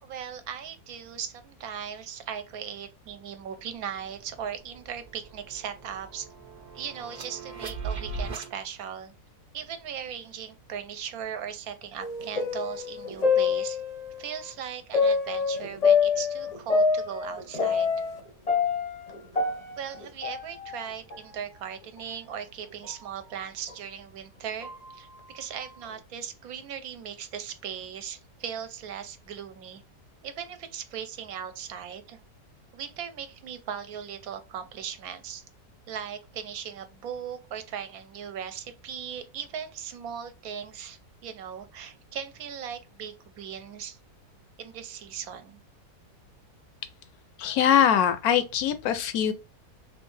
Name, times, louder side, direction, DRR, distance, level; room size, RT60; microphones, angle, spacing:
voice 1, 0.0-6.3 6.7-9.1 9.5-13.8 14.2-17.9 19.8-29.8 30.2-32.2 32.7-35.4 35.9-44.0 44.6-45.6, right 8 dB, 70° right, 1.0 m, -38 dB
sound 1, 3.1-3.2 3.5-8.5, right 4 dB, 45° right, 0.6 m, -39 dB
sound 2, 12.0-14.2 14.9-18.2 18.5-20.8 21.1-21.2 22.0-22.1 22.8-23.0 23.7-23.8 24.6-24.9, left 5 dB, 40° left, 0.5 m, -26 dB
voice 2, 47.4-49.3, left 9 dB, 75° left, 1.0 m, -22 dB
3.3 x 3.1 x 3.1 m
omnidirectional pair, 1.7 m